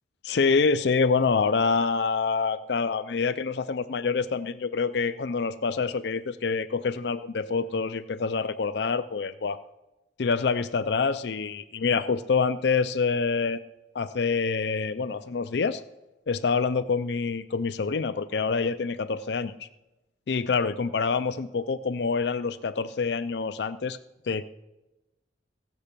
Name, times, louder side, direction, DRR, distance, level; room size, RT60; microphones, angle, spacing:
voice 1, 0.2-9.6 10.2-13.6 13.9-15.8 16.3-19.7 20.3-24.0 24.3-24.4, left 5 dB, 65° left, 13 dB, 0.5 m, -26 dB
16.0 x 7.2 x 6.7 m, 1.0 s
head